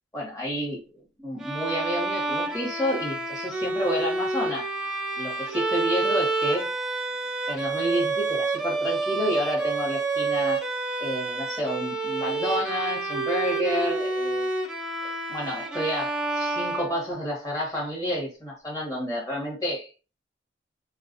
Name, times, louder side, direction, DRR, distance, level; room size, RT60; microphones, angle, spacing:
voice 1, 0.1-4.7 5.2-6.7 7.5-10.6 11.0-14.5 15.3-19.9, equal, 20° left, 1.1 m, -30 dB
Bowed string instrument, 1.4-17.4, right 3 dB, 5° right, 0.5 m, -29 dB
4.3 x 2.3 x 2.5 m
head